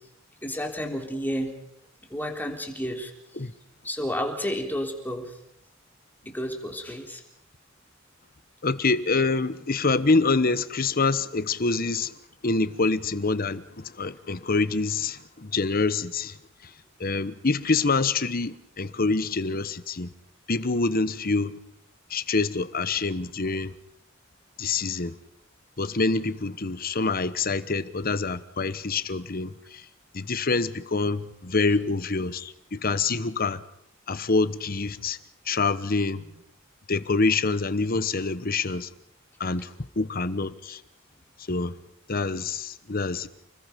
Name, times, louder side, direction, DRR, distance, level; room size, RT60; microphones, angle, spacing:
voice 1, 0.4-1.5 2.1-3.1 3.8-5.3 6.3-7.2, equal, 10° left, 3.5 m, -31 dB
voice 2, 8.6-12.1 12.4-16.4 17.0-20.1 20.5-21.5 22.1-23.7 24.6-25.1 25.8-29.8 30.1-33.6 34.1-35.2 35.5-36.2 36.9-38.9 39.4-39.7 40.0-40.8 41.5-41.7 42.1-43.3, left 3 dB, 45° left, 1.1 m, -26 dB
30.0 x 21.0 x 5.3 m
head